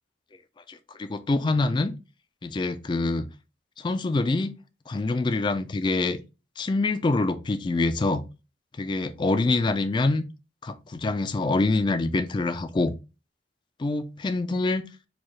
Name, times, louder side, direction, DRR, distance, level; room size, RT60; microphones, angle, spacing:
voice 1, 0.7-1.9 2.4-3.3 3.8-4.5 4.9-6.2 6.6-8.2 8.8-10.2 10.6-12.9 13.8-14.8, left 2 dB, 25° left, 0.3 m, -25 dB
4.5 x 2.4 x 3.1 m
head